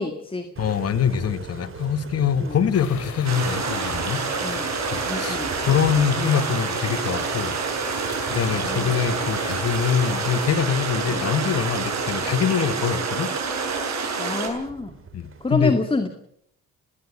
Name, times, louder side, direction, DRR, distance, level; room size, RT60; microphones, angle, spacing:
voice 1, 0.0-0.5 2.4-2.6 4.4-4.7 5.1-5.6 8.5-9.0 11.1-11.3 14.2-15.0 15.4-16.1, left 3 dB, 20° left, 2.1 m, -27 dB
voice 2, 0.6-4.3 4.9-5.4 5.7-7.6 8.3-13.3 15.1-15.8, left 8 dB, 55° left, 1.5 m, -24 dB
Engine, 0.6-15.5, right 5 dB, 45° right, 3.8 m, -39 dB
sound 1, 2.7-10.5, left 7 dB, 70° left, 5.6 m, -40 dB
sound 2, 3.2-14.5, right 5 dB, 65° right, 7.3 m, -27 dB
20.5 x 17.0 x 8.5 m
cardioid pair, 90°, 30 cm